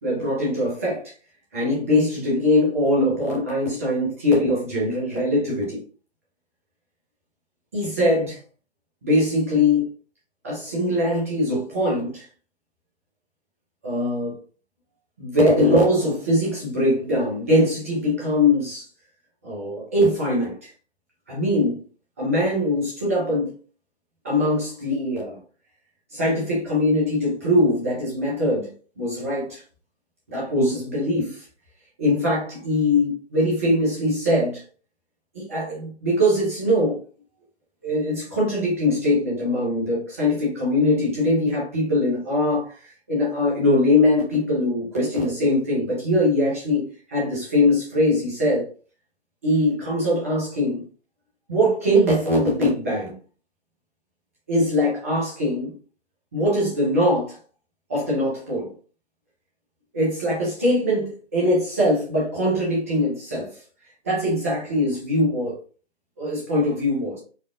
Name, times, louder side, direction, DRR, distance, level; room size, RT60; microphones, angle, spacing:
voice 1, 0.0-1.0 1.5-5.8 7.7-8.4 9.0-9.9 10.4-12.3 13.8-14.3 15.2-18.8 19.4-20.7 21.3-21.8 22.2-23.5 24.2-25.4 26.1-28.7 29.0-29.6 30.3-31.4 32.0-34.6 35.3-37.0 37.8-48.7 49.4-50.8 51.5-53.2 54.5-55.7 56.3-57.4 57.9-58.7 59.9-63.5 64.0-65.5 66.2-67.2, left 1 dB, 15° right, 0.8 m, -22 dB
4.2 x 2.4 x 2.6 m
figure-of-eight pair, 150°, 34 cm